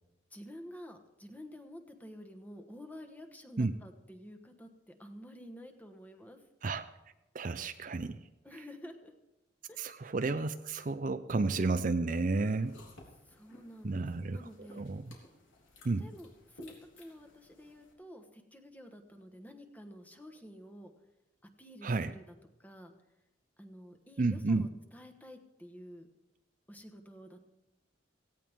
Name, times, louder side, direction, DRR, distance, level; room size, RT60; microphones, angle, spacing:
voice 1, 0.3-6.4 8.4-9.1 9.7-10.0 13.2-14.8 16.0-20.9 21.6-22.3 22.6-22.9 23.6-26.1 26.7-27.4, equal, 10° left, 4 dB, 1.3 m, -50 dB
voice 2, 7.3-8.2 9.8-12.7 13.8-15.0 15.8-16.0 21.8-22.1 24.2-24.7, right 3 dB, 45° right, 10 dB, 0.5 m, -32 dB
sound 1, 12.3-17.9, left 1 dB, 80° left, 3.8 m, -57 dB
17.0 x 16.5 x 3.6 m, 0.98 s
head